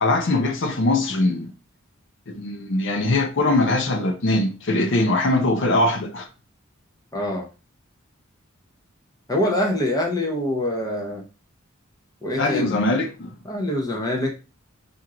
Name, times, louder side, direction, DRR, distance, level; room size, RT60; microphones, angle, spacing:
voice 1, 0.0-1.5 2.3-6.3 12.4-13.3, left 2 dB, 65° left, 0.7 m, -21 dB
voice 2, 7.1-7.5 9.3-11.2 12.2-12.8 13.5-14.3, left 1 dB, 20° left, 0.7 m, -24 dB
4.4 x 2.6 x 3.7 m
head